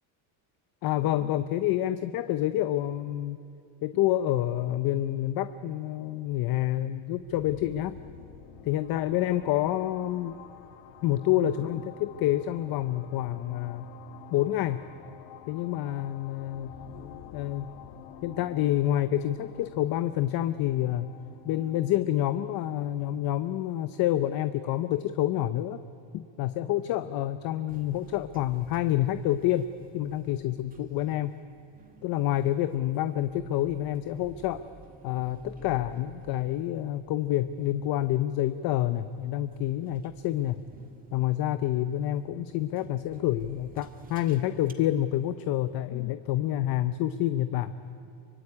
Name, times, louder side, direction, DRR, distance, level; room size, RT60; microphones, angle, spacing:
voice 1, 0.8-3.4 3.8-7.9 8.6-10.3 11.0-13.9 14.3-14.8 15.5-16.7 17.3-17.7 18.2-21.2 21.4-25.8 26.1-29.7 29.9-31.3 32.0-34.6 35.0-40.6 41.1-47.7, left 13 dB, 45° left, 12 dB, 0.7 m, -28 dB
sound 1, 7.2-24.8, left 10 dB, 80° left, 1.9 m, -49 dB
sound 2, 27.7-44.7, right 2 dB, 15° right, 1.7 m, -55 dB
24.5 x 24.0 x 9.8 m, 2.7 s
cardioid pair, 165°, 49 cm